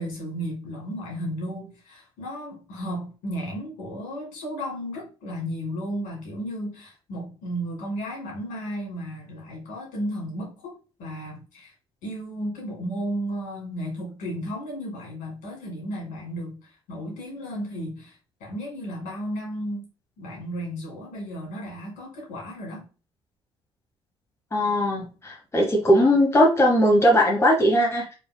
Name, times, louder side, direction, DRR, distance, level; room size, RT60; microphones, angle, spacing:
voice 1, 0.0-11.7 12.0-19.9 20.2-22.9, equal, 65° left, 2.2 m, -34 dB
voice 2, 24.5-28.1, equal, 20° left, 1.2 m, -19 dB
5.0 x 3.5 x 2.2 m
figure-of-eight pair, 50°, 15 cm